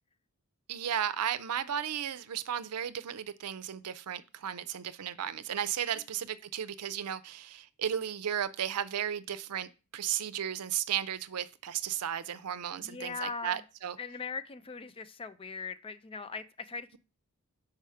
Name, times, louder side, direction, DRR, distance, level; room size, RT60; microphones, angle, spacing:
voice 1, 0.7-14.0, right 9 dB, 85° right, 0.5 m, -34 dB
voice 2, 12.8-13.6 14.0-16.9, left 5 dB, 25° left, 0.4 m, -40 dB
4.8 x 4.8 x 5.6 m
head